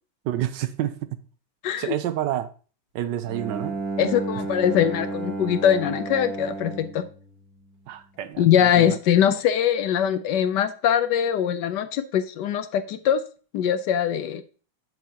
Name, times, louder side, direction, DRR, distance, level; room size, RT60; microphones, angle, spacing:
voice 1, 0.2-1.2 1.8-2.5 2.9-3.8 7.9-9.0, right 12 dB, 75° right, 1.2 m, -29 dB
voice 2, 1.6-2.0 4.0-7.0 8.4-13.2 13.5-14.4, left 9 dB, 70° left, 1.1 m, -22 dB
Bowed string instrument, 3.3-8.1, right 3 dB, 50° right, 1.7 m, -33 dB
7.9 x 7.4 x 2.8 m
omnidirectional pair, 2.2 m